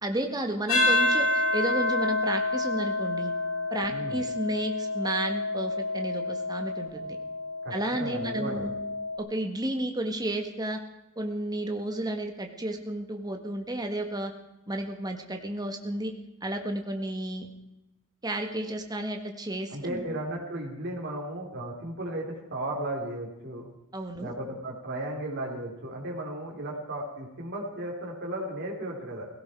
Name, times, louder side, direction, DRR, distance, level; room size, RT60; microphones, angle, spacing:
voice 1, 0.0-3.3 3.7-7.2 7.7-8.8 9.2-10.8 11.2-14.3 14.7-16.1 16.4-17.5 18.2-20.0 23.9-24.3, right 1 dB, 20° right, 4 dB, 1.7 m, -32 dB
sound 1, 0.7-9.2, left 2 dB, 80° left, 6.6 m, -28 dB
voice 2, 3.9-4.2 7.6-8.7 19.7-23.7 24.2-29.3, right 1 dB, 50° right, -1 dB, 4.2 m, -35 dB
17.5 x 17.0 x 4.8 m, 0.89 s
head